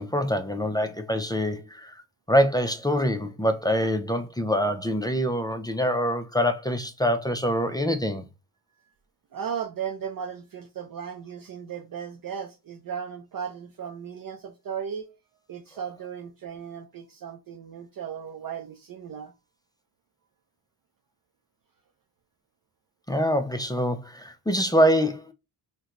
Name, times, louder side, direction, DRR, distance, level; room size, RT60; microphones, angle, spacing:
voice 1, 0.0-2.0 2.3-8.2 23.1-25.3, equal, 10° left, 0.4 m, -25 dB
voice 2, 9.3-15.1 15.5-19.3, right 7 dB, 55° right, 0.6 m, -36 dB
2.9 x 2.2 x 3.7 m
wide cardioid pair, 95°, 42 cm